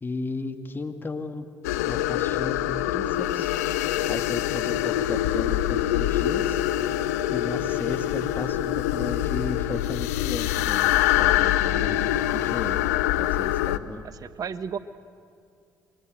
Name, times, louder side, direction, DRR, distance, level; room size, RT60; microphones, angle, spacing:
voice 1, 0.0-1.5 1.9-6.6 7.3-12.9 13.2-14.0, left 3 dB, 25° left, 5 dB, 2.3 m, -35 dB
sound 1, 1.6-13.8, left 13 dB, 80° left, 0.6 m, -25 dB
sound 2, 11.7-13.0, left 5 dB, 60° left, 2.5 m, -48 dB
voice 2, 14.2-14.8, right 7 dB, 45° right, 12 dB, 1.3 m, -33 dB
29.5 x 23.5 x 7.9 m, 2.3 s
hypercardioid pair, 55°, 8 cm